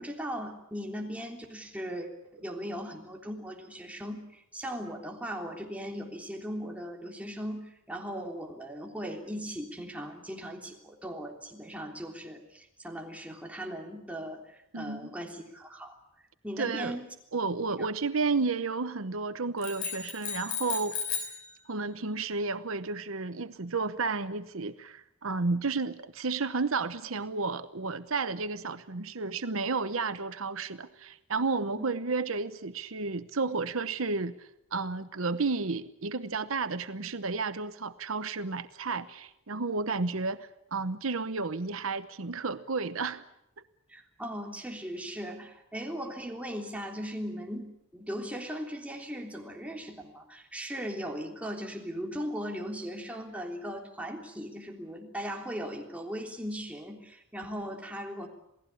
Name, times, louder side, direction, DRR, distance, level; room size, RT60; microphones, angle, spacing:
voice 1, 0.0-15.9 16.4-17.1 17.8-17.9 43.9-58.3, equal, 5° right, 3.5 m, -38 dB
voice 2, 14.7-15.1 16.6-17.0 17.3-21.0 21.7-43.2, right 4 dB, 80° right, 1.0 m, -32 dB
sound 1, 19.6-21.4, left 7 dB, 80° left, 6.2 m, -34 dB
28.0 x 18.0 x 8.6 m
head